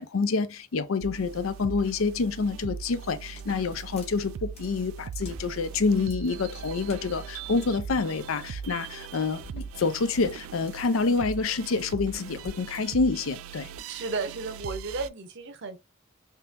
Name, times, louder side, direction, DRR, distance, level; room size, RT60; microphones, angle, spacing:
voice 1, 0.0-13.7, left 4 dB, 75° left, 0.5 m, -27 dB
sound 1, 1.0-15.1, right 7 dB, 80° right, 0.3 m, -40 dB
sound 2, 3.2-12.8, equal, 30° left, 1.3 m, -48 dB
voice 2, 13.9-15.8, right 4 dB, 60° right, 0.8 m, -33 dB
3.7 x 2.9 x 2.5 m
head